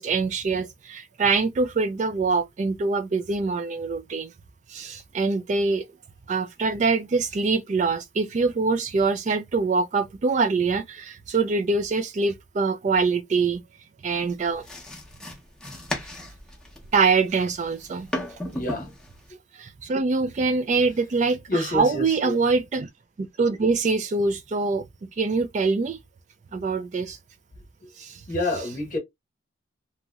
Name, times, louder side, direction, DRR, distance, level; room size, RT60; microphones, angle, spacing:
voice 1, 0.0-4.3 4.7-5.8 6.3-13.6 14.0-14.7 16.9-18.1 19.5-22.9 23.2-24.8 25.2-26.0 26.5-27.2 28.0-28.2, right 4 dB, 40° right, 0.3 m, -24 dB
sound 1, 14.1-19.3, left 1 dB, 5° left, 0.7 m, -36 dB
voice 2, 18.5-18.9 21.5-22.4 28.3-29.0, left 2 dB, 40° left, 1.0 m, -28 dB
2.9 x 2.8 x 2.3 m
head